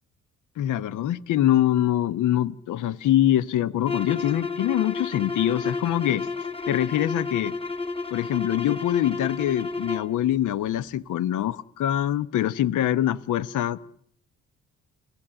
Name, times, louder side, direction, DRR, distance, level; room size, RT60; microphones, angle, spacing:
voice 1, 0.6-6.3 6.7-7.5 8.1-13.9, left 12 dB, 80° left, 1.0 m, -24 dB
sound 1, 3.8-10.2, left 4 dB, 20° left, 2.5 m, -31 dB
29.5 x 18.0 x 8.9 m
cardioid pair, 90°, 30 cm